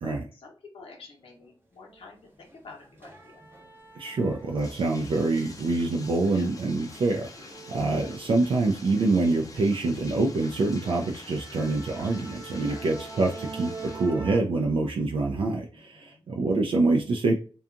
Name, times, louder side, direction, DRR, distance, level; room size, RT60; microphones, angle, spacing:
voice 1, 0.0-3.4 6.3-6.5 12.6-12.9 13.1-13.3 15.7-16.3, left 4 dB, 80° left, 0 dB, 0.7 m, -49 dB
sound 1, 1.9-2.0 2.4-4.8 5.1-8.9 9.3-9.5 9.9-10.0 10.4-14.4, right 4 dB, 20° right, 0.6 m, -44 dB
voice 2, 4.0-17.4, right 3 dB, 65° right, 1 dB, 0.4 m, -26 dB
Bathtub (filling or washing), 4.4-14.1, left 3 dB, 35° left, 0.4 m, -47 dB
2.7 x 2.3 x 2.4 m, 0.37 s
wide cardioid pair, 120°, 10 cm